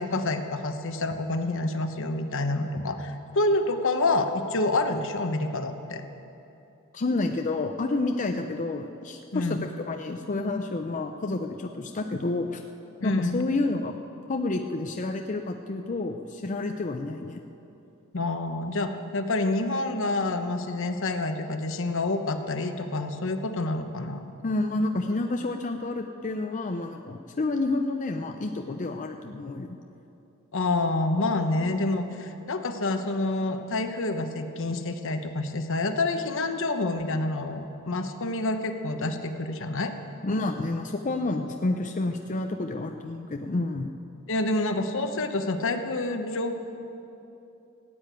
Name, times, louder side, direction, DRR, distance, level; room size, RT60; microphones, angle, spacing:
voice 1, 0.0-6.0 9.3-9.6 13.0-13.4 18.1-24.3 30.5-39.9 44.3-46.6, left 2 dB, 65° left, 7 dB, 1.0 m, -28 dB
voice 2, 6.9-12.6 13.0-13.9 14.3-17.4 24.4-29.8 40.2-43.9, left 2 dB, 35° left, 5 dB, 0.6 m, -29 dB
16.5 x 8.8 x 9.1 m, 2.9 s
head